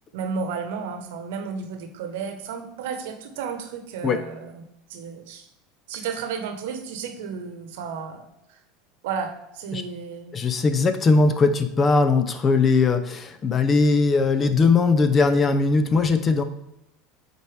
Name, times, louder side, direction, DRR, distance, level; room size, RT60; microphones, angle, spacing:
voice 1, 0.1-4.6 4.9-5.5 5.9-8.6 9.0-10.3, right 6 dB, 80° right, 7 dB, 1.0 m, -33 dB
voice 2, 10.3-16.4, left 4 dB, 30° left, 10 dB, 0.6 m, -20 dB
7.8 x 4.2 x 3.4 m, 0.85 s
supercardioid pair, 115°, 0 cm